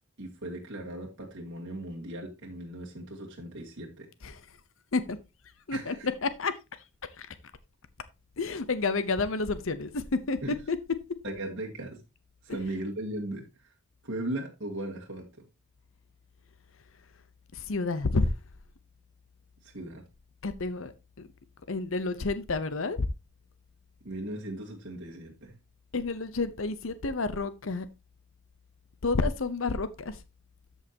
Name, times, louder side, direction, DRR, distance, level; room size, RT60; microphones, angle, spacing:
voice 1, 0.2-4.1 5.7-6.1 10.4-10.5 11.2-12.0 12.4-13.7 14.0-15.5 19.6-20.0 24.0-25.6, right 1 dB, 55° right, 2.0 m, -37 dB
voice 2, 5.7-6.6 7.2-7.3 8.4-10.4 10.7-10.8 17.5-18.3 20.4-20.9 21.2-21.3 21.7-23.1 25.9-27.9 29.0-30.2, left 3 dB, 65° left, 0.8 m, -30 dB
13.0 x 5.6 x 2.8 m
head